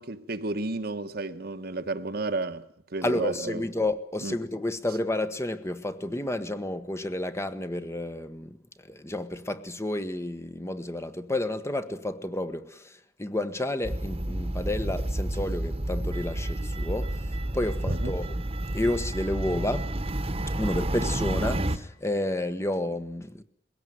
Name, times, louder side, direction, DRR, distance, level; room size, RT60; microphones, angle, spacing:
voice 1, 0.0-2.6 2.9-3.6 4.2-4.4 17.9-18.2, right 2 dB, 60° right, 1.4 m, -32 dB
voice 2, 3.0-17.3 17.5-18.4 18.7-19.9 20.5-23.4, left 1 dB, 15° left, 1.3 m, -31 dB
sound 1, 13.8-21.8, right 1 dB, 35° right, 1.5 m, -30 dB
21.5 x 17.0 x 9.4 m
head